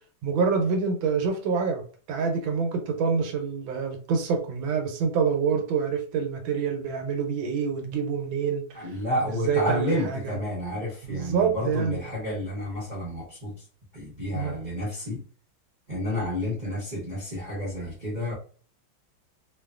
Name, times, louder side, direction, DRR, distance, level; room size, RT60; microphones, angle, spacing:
voice 1, 0.2-1.8 2.1-8.6 9.2-10.3 11.0-12.0 14.3-14.6, right 5 dB, 85° right, 4 dB, 1.4 m, -26 dB
voice 2, 8.7-13.7 13.9-15.2 15.9-18.3, left 1 dB, 55° right, -7 dB, 0.5 m, -30 dB
3.1 x 2.3 x 2.3 m, 0.41 s
omnidirectional pair, 2.1 m